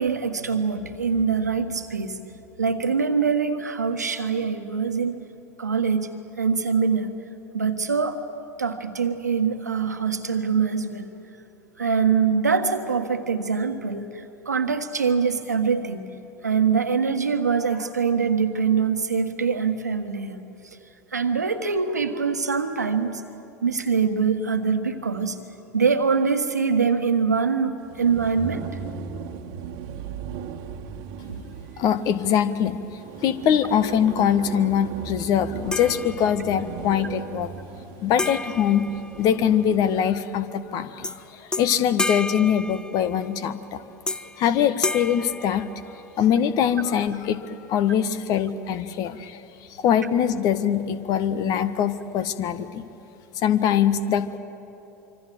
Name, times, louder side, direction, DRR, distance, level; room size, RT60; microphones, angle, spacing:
voice 1, 0.0-2.2 2.6-5.2 5.6-6.1 6.4-7.1 7.5-8.2 8.6-11.1 11.8-16.1 16.4-20.4 21.1-23.2 23.6-25.4 25.7-28.6, right 5 dB, 85° right, 7 dB, 1.5 m, -24 dB
sound 1, 27.8-39.8, right 7 dB, 50° right, 1.5 m, -38 dB
voice 2, 31.8-32.8 33.2-37.5 38.0-38.9 39.2-43.8 44.4-45.7 46.2-49.4 49.8-52.8 53.4-54.4, left 9 dB, 45° left, 13 dB, 1.3 m, -23 dB
sound 2, 35.7-36.7 38.2-39.8 41.0-41.2 41.5-43.3 44.1-44.5 44.8-46.3, left 2 dB, 10° left, 0.7 m, -31 dB
25.5 x 25.0 x 7.8 m, 2.9 s
figure-of-eight pair, 75°, 9 cm